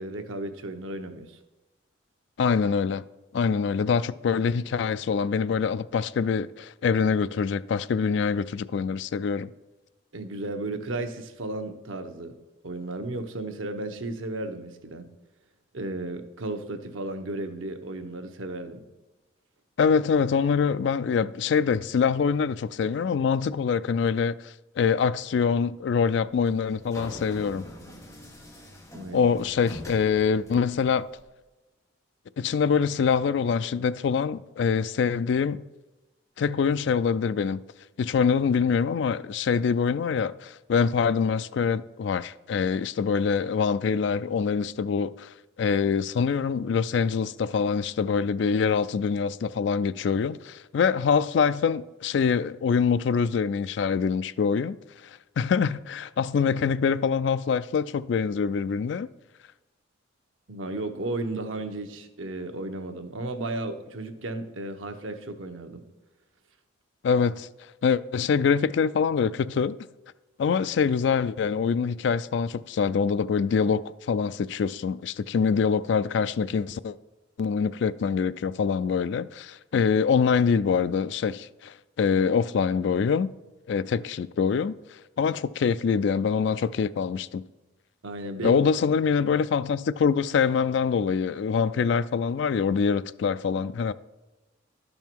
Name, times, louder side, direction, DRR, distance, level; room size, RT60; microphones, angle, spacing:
voice 1, 0.0-1.4 10.1-12.3 12.6-15.1 15.7-18.9 28.9-29.3 60.5-65.8 88.0-88.6, right 2 dB, 85° right, 0.9 m, -34 dB
voice 2, 2.4-3.0 3.3-9.5 19.8-27.6 29.1-31.1 32.4-35.6 36.4-37.6 38.0-54.8 55.0-55.1 55.4-59.1 67.0-67.5 67.8-69.8 70.4-77.0 77.4-83.3 83.7-84.8 85.2-87.4 88.4-93.9, left 6 dB, 60° left, 0.3 m, -24 dB
sound 1, 26.4-31.2, left 1 dB, 15° left, 1.2 m, -44 dB
12.0 x 5.5 x 4.5 m
head